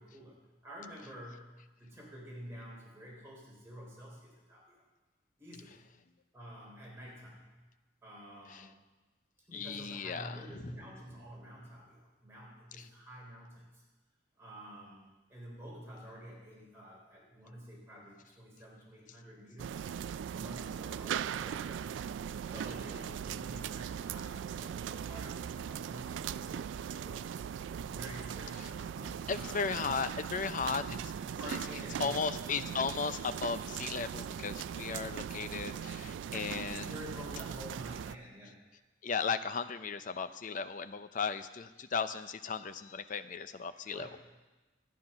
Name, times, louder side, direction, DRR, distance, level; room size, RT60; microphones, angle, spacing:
voice 1, 0.0-4.8 5.4-5.9 6.3-7.5 8.0-8.7 9.5-13.8 14.4-19.9 20.3-21.9 22.4-27.4 27.7-29.9 30.8-31.1 31.4-32.7 36.7-38.6 43.8-44.2, equal, 15° right, -5 dB, 4.1 m, -49 dB
voice 2, 9.5-10.4 29.3-31.0 32.0-36.9 39.0-44.1, left 5 dB, 45° left, 11 dB, 0.5 m, -36 dB
sound 1, 19.6-38.2, right 8 dB, 85° right, 0.3 m, -39 dB
12.0 x 9.4 x 5.7 m, 1.2 s
head